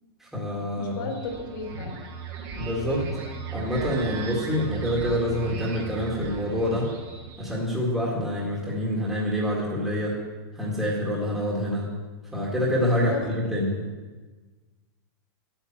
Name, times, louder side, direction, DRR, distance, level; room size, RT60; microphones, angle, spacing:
voice 1, 0.2-1.1 2.6-3.1 3.5-6.9 7.4-10.2 10.5-11.9 12.3-13.8, equal, 5° right, -5 dB, 2.0 m, -26 dB
voice 2, 0.8-2.0 13.0-13.2, left 4 dB, 60° left, 1 dB, 3.5 m, -34 dB
sound 1, 1.0-7.6, right 4 dB, 35° right, 1.8 m, -36 dB
10.0 x 8.8 x 7.4 m, 1.3 s
supercardioid pair, 165°, 13 cm